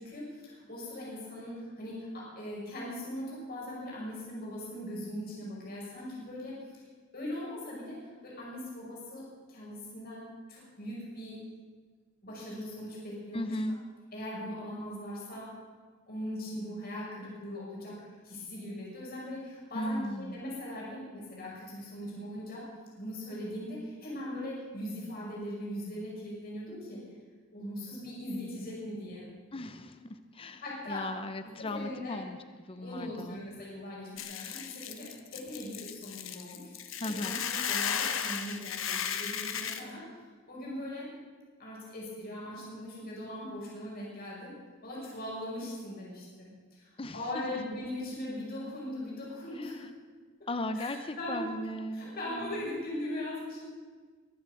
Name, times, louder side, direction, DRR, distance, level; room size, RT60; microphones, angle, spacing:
voice 1, 0.0-6.8 7.1-11.4 12.2-13.5 14.1-15.5 16.1-22.6 23.0-27.0 27.5-29.3 30.4-31.1 31.6-32.2 32.7-36.7 37.0-40.0 40.5-41.1 41.6-44.5 44.8-49.8 50.4-50.5 50.7-51.5 51.9-53.7, left 1 dB, 50° left, -5 dB, 5.8 m, -40 dB
voice 2, 13.3-13.8 19.7-20.4 29.5-32.4 32.7-33.4 37.0-37.4 47.0-47.6 49.5-49.9 50.5-52.6, left 1 dB, 30° left, 9 dB, 0.7 m, -37 dB
Hiss / Boiling, 34.2-39.8, left 8 dB, 80° left, 1.2 m, -35 dB
22.0 x 7.9 x 7.7 m, 1.5 s
head